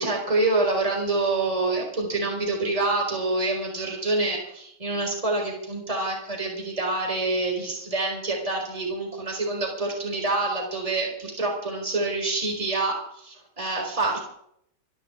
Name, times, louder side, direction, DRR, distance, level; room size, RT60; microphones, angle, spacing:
voice 1, 0.0-14.2, right 2 dB, 15° right, 0 dB, 4.1 m, -26 dB
28.0 x 11.5 x 3.7 m, 0.71 s
omnidirectional pair, 2.3 m